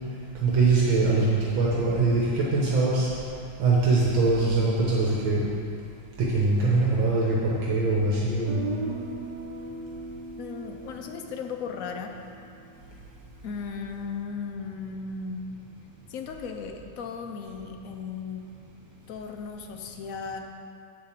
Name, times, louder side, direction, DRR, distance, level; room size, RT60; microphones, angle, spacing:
voice 1, 0.4-3.1 3.6-5.4 6.2-8.7, right 3 dB, 80° right, -5 dB, 1.9 m, -23 dB
Guitar, 8.5-12.4, right 3 dB, 45° right, 0.5 m, -37 dB
voice 2, 10.4-12.1 13.4-15.6 16.1-18.4 19.1-20.4, left 5 dB, 70° left, 4 dB, 0.8 m, -36 dB
7.5 x 5.1 x 7.2 m, 2.5 s
omnidirectional pair, 2.1 m